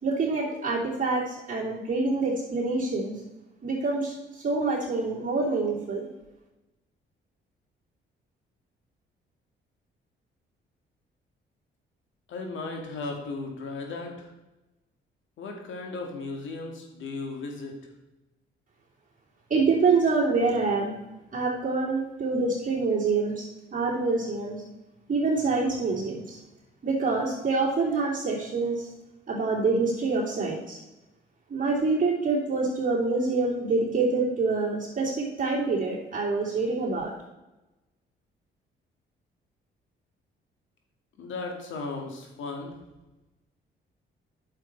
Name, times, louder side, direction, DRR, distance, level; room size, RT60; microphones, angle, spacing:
voice 1, 0.0-3.2 3.6-6.1 19.5-21.0 21.3-24.6 25.1-26.4 26.8-28.9 29.3-30.8 31.5-37.1, right 3 dB, 40° right, -6 dB, 3.0 m, -26 dB
voice 2, 12.3-14.3 15.4-17.8 41.2-42.8, left 3 dB, 75° left, 2 dB, 2.2 m, -36 dB
9.4 x 6.9 x 4.6 m, 1.0 s
cardioid pair, 90°, 20 cm